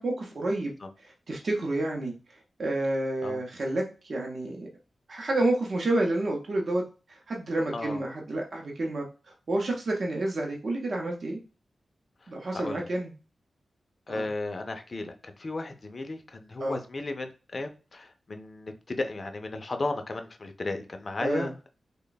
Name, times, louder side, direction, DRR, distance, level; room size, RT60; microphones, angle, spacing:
voice 1, 0.0-2.1 2.6-4.7 5.1-6.8 7.1-9.0 9.5-11.4 12.3-13.1 14.1-14.3 16.6-16.8 21.2-21.5, right 2 dB, 50° right, 0.7 m, -29 dB
voice 2, 12.2-12.9 14.1-21.7, left 2 dB, 35° left, 0.4 m, -35 dB
3.3 x 2.2 x 3.9 m
wide cardioid pair, 140°, 0 cm